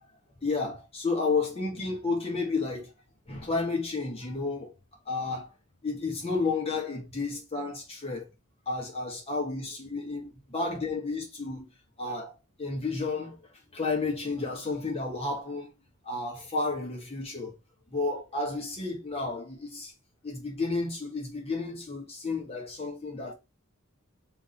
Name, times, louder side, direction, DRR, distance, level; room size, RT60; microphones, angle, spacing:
voice 1, 0.4-2.9 3.3-4.7 5.1-5.5 5.8-8.3 8.7-11.7 12.0-12.3 12.6-13.4 13.7-15.7 16.1-17.6 17.9-19.9 20.2-23.3, left 3 dB, 30° left, 1.0 m, -31 dB
4.4 x 2.6 x 4.0 m
head